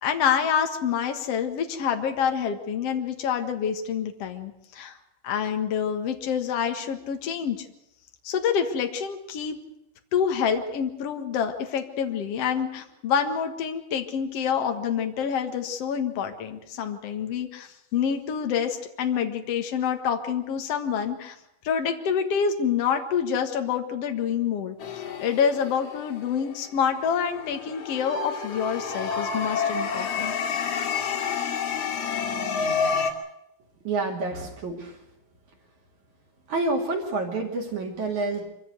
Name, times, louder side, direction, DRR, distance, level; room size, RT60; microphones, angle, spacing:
voice 1, 0.0-5.0 5.2-7.6 8.2-9.6 10.1-21.3 21.6-24.8 25.2-30.3, left 7 dB, 80° left, 5 dB, 1.4 m, -27 dB
sound 1, 24.8-26.7 27.2-33.1, left 6 dB, 40° left, 2.5 m, -29 dB
voice 2, 33.9-35.0 36.5-38.5, right 3 dB, 45° right, 2 dB, 3.4 m, -28 dB
25.0 x 16.0 x 8.0 m, 0.87 s
omnidirectional pair, 5.3 m